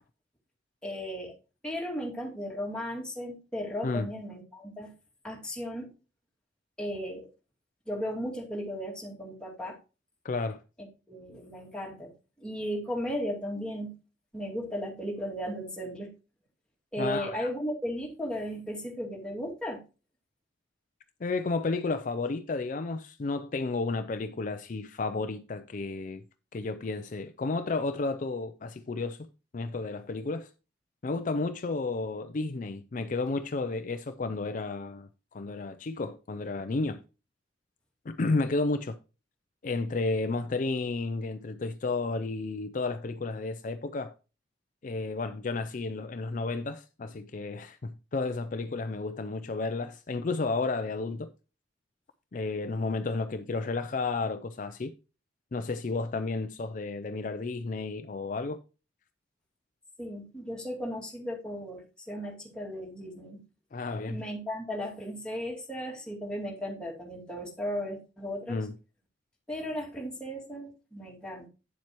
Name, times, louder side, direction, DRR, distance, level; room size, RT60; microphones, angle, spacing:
voice 1, 0.8-1.3 1.6-4.9 5.2-5.9 6.8-7.3 7.9-9.8 10.8-12.1 12.4-13.9 14.3-16.1 16.9-19.8 60.0-63.4 64.1-68.6 69.5-71.5, equal, 5° left, 2.3 m, -36 dB
voice 2, 10.2-10.6 17.0-17.5 21.2-26.2 26.5-29.2 29.5-30.5 31.0-37.0 38.1-39.0 39.6-44.1 44.8-51.3 52.3-54.9 55.5-58.6 63.7-64.2 68.5-68.7, left 3 dB, 45° left, 0.4 m, -32 dB
9.4 x 7.4 x 3.0 m
head